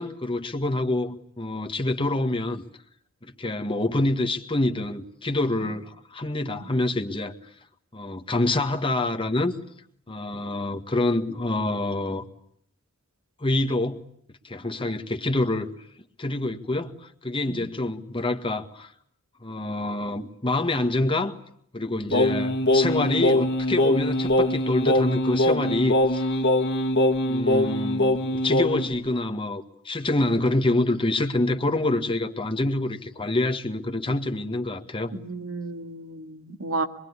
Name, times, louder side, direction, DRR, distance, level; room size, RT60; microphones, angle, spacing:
voice 1, 0.0-2.6 3.2-7.3 7.9-9.5 10.1-12.3 13.4-14.0 14.3-15.7 16.2-18.9 19.4-21.4 21.7-26.3 27.2-35.1, left 2 dB, 25° left, 1.8 m, -26 dB
Singing, 22.1-28.9, left 1 dB, 55° left, 2.1 m, -22 dB
voice 2, 35.1-36.9, right 3 dB, 75° right, 2.3 m, -32 dB
26.0 x 22.5 x 9.8 m
head